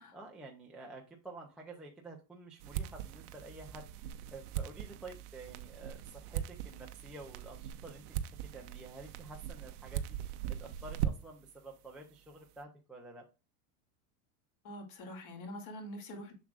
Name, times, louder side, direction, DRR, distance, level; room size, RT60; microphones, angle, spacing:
voice 1, 0.1-10.2 10.5-13.3, right 2 dB, ahead, 0.3 m, -50 dB
sound 1, 2.6-11.4, right 10 dB, 85° right, 0.8 m, -40 dB
voice 2, 14.6-16.3, equal, 50° left, 2.5 m, -45 dB
7.2 x 6.1 x 2.4 m
supercardioid pair, 145°, 44 cm